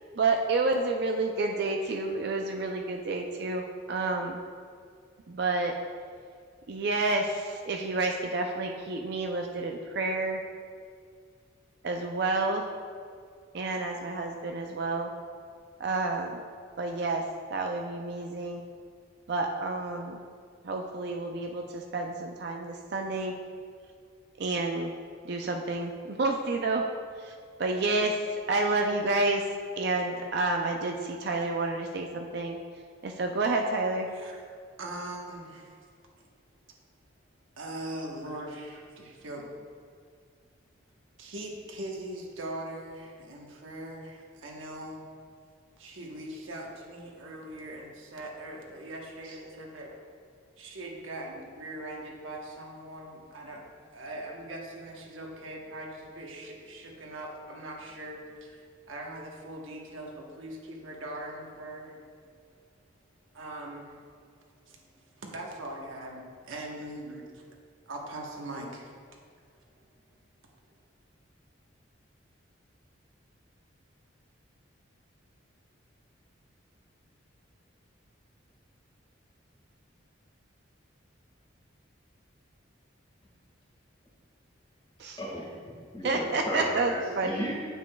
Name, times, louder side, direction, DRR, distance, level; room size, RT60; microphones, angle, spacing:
voice 1, 0.2-4.4 5.3-5.7 6.7-10.4 11.8-12.6 13.5-15.1 15.8-16.4 16.8-17.2 17.5-18.6 19.3-20.2 20.6-23.3 24.4-24.9 25.3-26.8 27.2-27.3 27.6-28.2 28.5-29.4 29.8-32.6 33.0-34.1 85.0-85.2 86.0-87.4, right 3 dB, 55° right, 3 dB, 0.4 m, -29 dB
voice 2, 34.8-35.8 37.6-39.5 41.2-45.0 45.8-50.0 50.6-53.6 53.9-58.6 58.9-62.0 63.3-64.0 64.7-67.4 67.9-68.9, right 1 dB, 85° right, -1 dB, 1.1 m, -41 dB
voice 3, 85.2-87.5, equal, 25° left, -5 dB, 1.6 m, -35 dB
9.2 x 7.2 x 2.3 m, 2.2 s
head